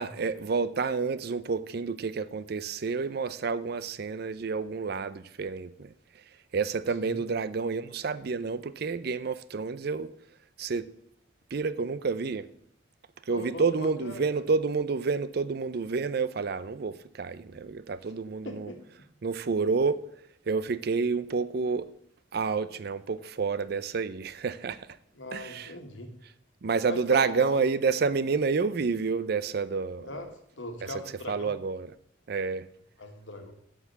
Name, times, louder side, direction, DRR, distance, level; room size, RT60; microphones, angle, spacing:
voice 1, 0.0-6.2 6.5-10.1 10.6-10.9 11.5-12.5 13.3-18.7 19.2-20.0 20.5-21.9 22.3-24.9 25.3-25.7 26.6-30.1 31.3-31.9 32.3-32.7, right 5 dB, 55° right, 0.5 m, -29 dB
voice 2, 13.3-14.4 18.4-18.8 25.1-26.1 26.9-27.6 30.0-30.3 30.6-31.5 33.0-33.5, left 2 dB, 75° left, 1.6 m, -40 dB
7.3 x 6.7 x 6.9 m
head